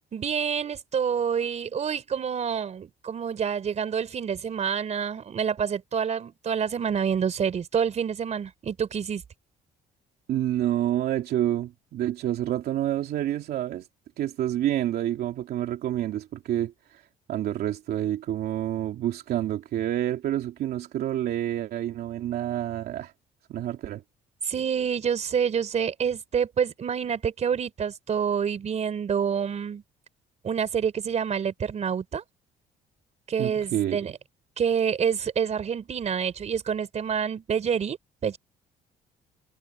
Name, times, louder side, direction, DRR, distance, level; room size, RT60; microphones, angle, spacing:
voice 1, 0.1-9.2 24.5-29.8 30.4-32.2 33.3-34.1 34.6-38.0 38.2-38.4, right 7 dB, 40° right, 4.0 m, -27 dB
voice 2, 10.3-13.9 14.2-17.0 17.3-23.1 23.5-24.0 33.4-34.1, right 12 dB, 70° right, 2.8 m, -28 dB
cardioid pair, 110°, 17 cm